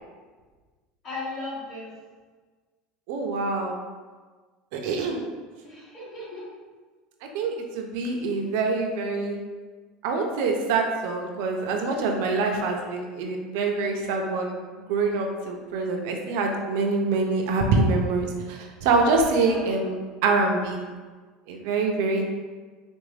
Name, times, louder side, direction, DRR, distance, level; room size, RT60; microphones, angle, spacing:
voice 1, 1.0-1.9 5.6-6.4 8.1-8.2 19.2-19.7, left 2 dB, 35° left, -7 dB, 1.4 m, -36 dB
voice 2, 3.1-3.8 4.7-5.2 7.3-9.4 10.0-20.0 20.2-20.8 21.5-22.3, right 3 dB, 70° right, 2 dB, 0.5 m, -25 dB
3.7 x 2.5 x 3.2 m, 1.4 s
cardioid pair, 155°, 0 cm